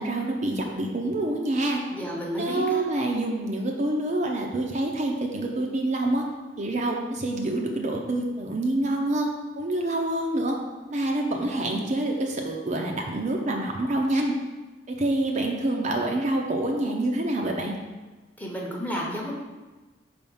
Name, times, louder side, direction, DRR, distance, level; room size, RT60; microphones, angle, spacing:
voice 1, 0.0-1.8 2.4-6.2 6.6-9.3 9.6-10.6 10.9-14.3 14.9-17.7, right 1 dB, 40° right, 1 dB, 0.6 m, -26 dB
voice 2, 1.9-2.8 18.4-19.3, equal, 10° left, -2 dB, 0.8 m, -31 dB
5.0 x 3.4 x 5.5 m, 1.2 s
head